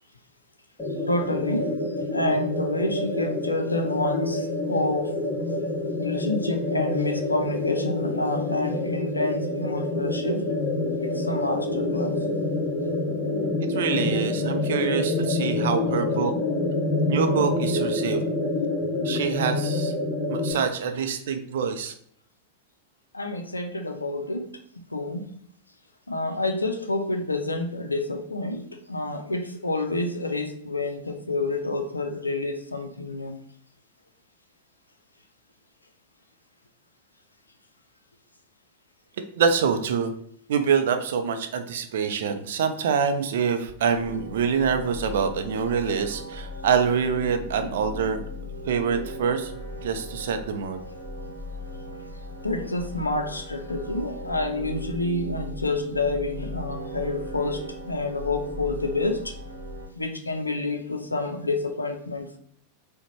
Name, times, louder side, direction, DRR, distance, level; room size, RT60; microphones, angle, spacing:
sound 1, 0.8-20.5, left 2 dB, 20° left, 1.2 m, -27 dB
voice 1, 1.1-5.1 6.0-10.5 11.0-12.2 23.1-25.3 26.1-33.4 52.4-59.3 60.0-62.4, left 2 dB, 80° left, 5 dB, 0.5 m, -28 dB
voice 2, 13.7-16.3 17.1-18.2 19.0-19.9 20.3-21.9 39.4-40.1 40.5-48.2 48.7-50.8, right 6 dB, 60° right, 7 dB, 0.4 m, -25 dB
sound 2, 43.9-59.9, equal, 90° right, 0.8 m, -38 dB
4.7 x 2.2 x 3.1 m, 0.65 s
figure-of-eight pair, 90°, 0 cm